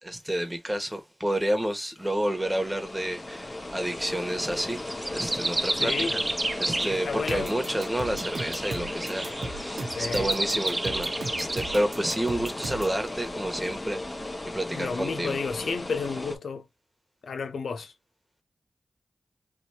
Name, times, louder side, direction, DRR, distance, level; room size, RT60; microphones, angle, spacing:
voice 1, 0.0-4.8 5.1-5.9 6.6-14.0 14.5-15.4, right 1 dB, 10° right, 1.4 m, -30 dB
sound 1, 2.0-16.4, left 2 dB, 35° left, 1.1 m, -36 dB
sound 2, 3.8-4.0 4.8-7.2 7.7-11.9, right 2 dB, 35° right, 0.4 m, -31 dB
voice 2, 5.7-6.2 6.9-7.8 9.8-10.3 14.7-16.7 17.2-17.9, left 5 dB, 90° left, 0.5 m, -32 dB
sound 3, 7.3-13.0, right 3 dB, 85° right, 0.8 m, -37 dB
3.4 x 2.8 x 2.8 m
cardioid pair, 45°, 0 cm